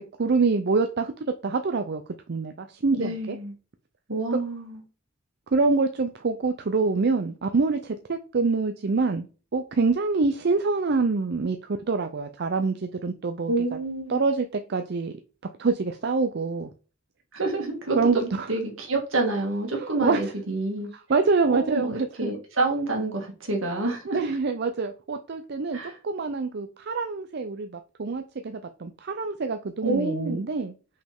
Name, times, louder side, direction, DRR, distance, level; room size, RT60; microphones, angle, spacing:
voice 1, 0.2-1.1 1.4-2.0 2.3-3.4 5.5-9.3 9.5-11.6 11.9-13.5 14.1-15.1 15.6-16.7 17.9-18.5 19.8-20.2 21.1-22.3 24.1-25.8 26.0-30.7, right 4 dB, 55° right, 0.5 m, -25 dB
voice 2, 2.9-3.5 4.1-4.8 13.5-14.2 17.3-20.9 21.5-24.3 25.7-26.0 29.8-30.4, right 2 dB, 75° right, 2.1 m, -28 dB
5.7 x 5.3 x 3.6 m
head